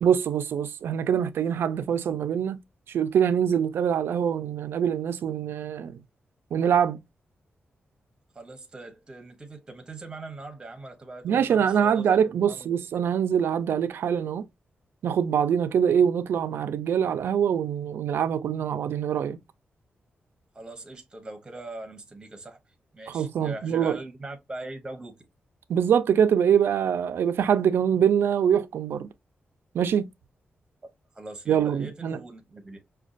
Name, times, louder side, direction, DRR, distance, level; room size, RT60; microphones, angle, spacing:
voice 1, 0.0-2.6 2.9-6.0 6.5-7.0 11.2-14.5 15.0-19.4 23.1-24.0 25.7-29.1 29.7-30.1 31.5-32.2, right 8 dB, 85° right, 0.4 m, -24 dB
voice 2, 8.3-12.7 20.5-22.6 22.9-25.2 31.1-32.8, right 2 dB, 20° right, 0.8 m, -41 dB
5.1 x 2.2 x 2.4 m
wide cardioid pair, 145°, 4 cm